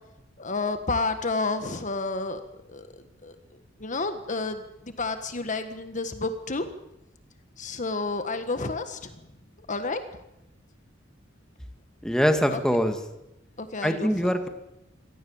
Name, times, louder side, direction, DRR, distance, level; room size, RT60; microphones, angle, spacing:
voice 1, 0.4-2.4 2.7-2.9 3.2-3.4 3.8-6.7 7.6-9.1 9.7-10.0 12.5-12.6 13.6-14.1, left 3 dB, 40° left, 9 dB, 1.5 m, -30 dB
voice 2, 12.0-13.0 13.8-14.5, equal, 5° left, 6 dB, 2.0 m, -23 dB
25.0 x 17.5 x 7.2 m, 0.89 s
head